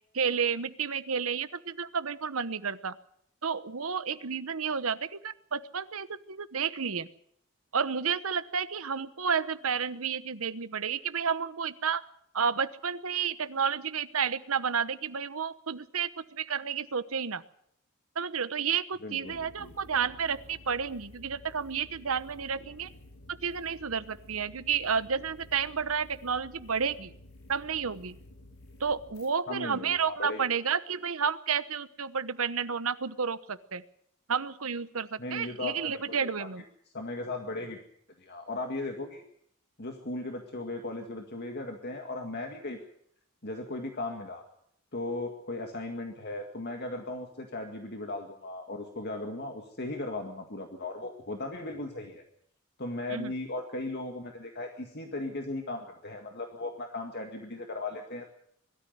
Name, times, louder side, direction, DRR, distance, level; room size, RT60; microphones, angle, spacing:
voice 1, 0.1-3.0 3.4-7.1 7.7-12.0 12.3-17.4 18.2-22.9 23.4-27.1 27.5-28.1 28.8-33.8 34.3-36.6 53.1-53.3, right 6 dB, 75° right, 14 dB, 1.0 m, -31 dB
voice 2, 19.0-19.7 29.5-30.4 35.2-36.5 36.9-37.8 38.2-39.2 39.8-42.8 43.4-44.4 44.9-52.2 52.8-58.3, left 2 dB, 50° left, 4 dB, 2.0 m, -37 dB
sound 1, 19.3-29.3, left 1 dB, 90° left, 3.9 m, -52 dB
21.0 x 13.5 x 9.5 m, 0.69 s
head